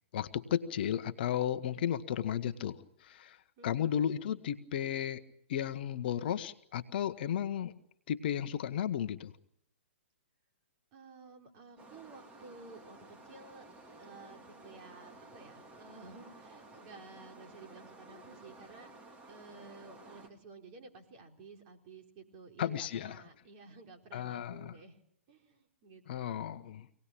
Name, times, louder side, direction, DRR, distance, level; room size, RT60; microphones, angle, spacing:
voice 1, 0.1-3.4 3.6-5.2 5.5-7.7 8.1-9.3 22.6-23.2 24.1-24.7 26.1-27.0, left 10 dB, 50° left, 11 dB, 1.2 m, -34 dB
voice 2, 10.9-13.6 14.0-25.0 25.3-26.6, right 4 dB, 35° right, 3 dB, 4.4 m, -53 dB
sound 1, 11.8-20.3, right 2 dB, 15° right, 3.1 m, -54 dB
25.5 x 18.5 x 8.7 m, 0.74 s
figure-of-eight pair, 125°, 7 cm